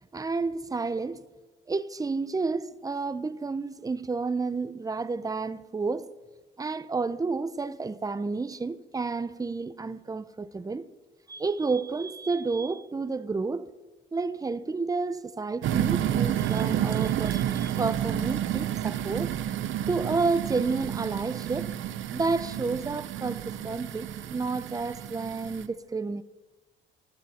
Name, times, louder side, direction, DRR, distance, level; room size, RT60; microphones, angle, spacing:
voice 1, 0.1-1.2 1.7-6.1 6.6-10.9 11.3-13.7 14.1-19.3 19.9-21.7 22.1-26.2, right 4 dB, 20° right, 0.7 m, -30 dB
sound 1, 15.6-25.6, right 11 dB, 75° right, 0.9 m, -30 dB
17.5 x 13.5 x 4.4 m
cardioid pair, 90°, 20 cm